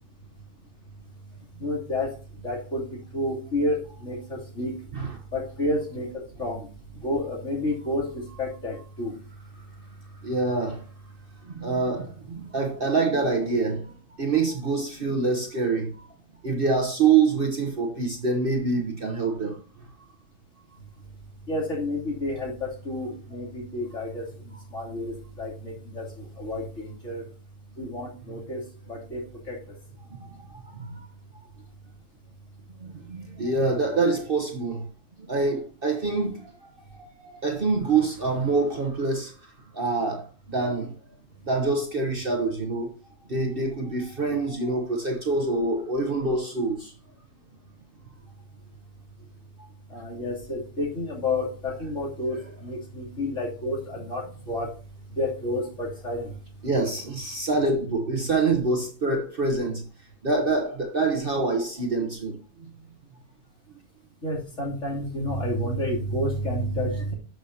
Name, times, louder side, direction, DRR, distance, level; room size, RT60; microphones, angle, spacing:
voice 1, 1.6-2.1 2.4-2.8 3.1-4.7 5.3-6.7 7.0-9.1 21.5-27.2 27.8-28.6 28.9-29.2 29.5-29.6 49.9-54.7 55.2-56.3 64.2-67.1, left 1 dB, 50° left, 3.4 m, -30 dB
voice 2, 10.2-10.8 11.5-16.0 16.4-19.6 30.1-31.0 32.8-34.8 35.2-40.9 41.4-42.9 43.3-46.9 56.6-59.8 60.2-62.4, right 3 dB, 40° right, 1.1 m, -26 dB
12.0 x 6.4 x 2.8 m
omnidirectional pair, 1.6 m